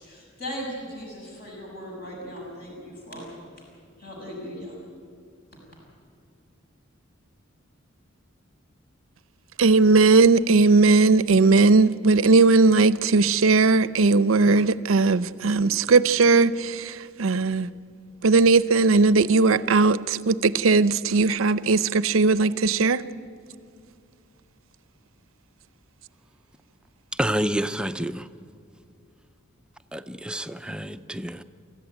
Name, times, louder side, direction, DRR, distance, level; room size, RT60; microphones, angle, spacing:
voice 1, 0.0-3.6 4.0-4.8 5.5-5.6, equal, 50° left, 6.0 m, -38 dB
voice 2, 9.6-17.7 18.2-23.0, right 3 dB, 85° right, 0.6 m, -18 dB
voice 3, 27.1-28.3 29.9-31.4, equal, 5° right, 0.5 m, -28 dB
24.0 x 14.0 x 9.1 m
head